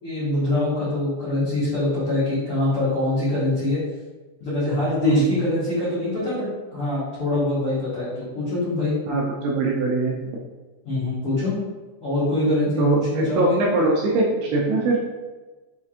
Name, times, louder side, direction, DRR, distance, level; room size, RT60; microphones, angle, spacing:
voice 1, 0.0-3.8 4.4-9.0 10.8-11.6 12.0-13.6, left 1 dB, 75° left, -12 dB, 1.2 m, -24 dB
voice 2, 9.1-10.3 12.8-15.0, right 2 dB, 80° right, -2 dB, 2.4 m, -22 dB
6.6 x 2.8 x 2.4 m, 1.2 s
omnidirectional pair, 5.0 m